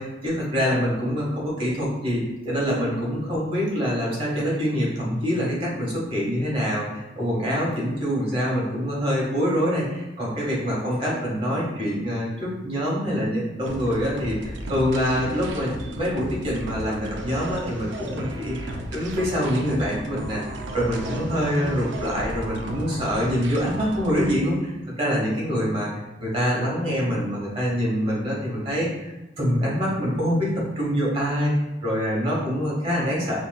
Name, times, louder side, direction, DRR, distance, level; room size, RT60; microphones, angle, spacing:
voice 1, 0.0-18.5 18.9-24.7 25.0-25.9 26.2-31.5 31.8-33.4, equal, 30° right, -5 dB, 1.5 m, -25 dB
sound 1, 13.6-24.3, right 1 dB, 75° right, 0.5 m, -34 dB
5.3 x 2.8 x 2.2 m, 1.1 s
head